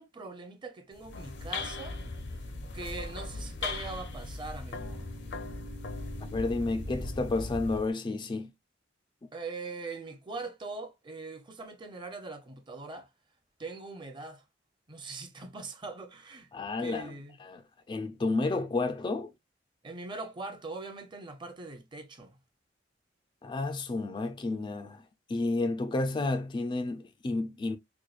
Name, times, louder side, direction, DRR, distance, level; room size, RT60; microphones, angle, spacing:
voice 1, 0.0-2.0 2.7-5.0 9.3-13.1 13.6-14.4 14.9-16.5 16.8-17.4 19.8-22.4, right 3 dB, 25° right, 0.6 m, -41 dB
sound 1, 0.9-7.9, left 3 dB, 70° left, 0.6 m, -38 dB
voice 2, 6.3-8.5 16.5-17.1 17.4-17.6 17.9-19.3 23.4-25.0 25.3-27.8, left 3 dB, 25° left, 0.3 m, -31 dB
4.6 x 2.2 x 2.4 m
head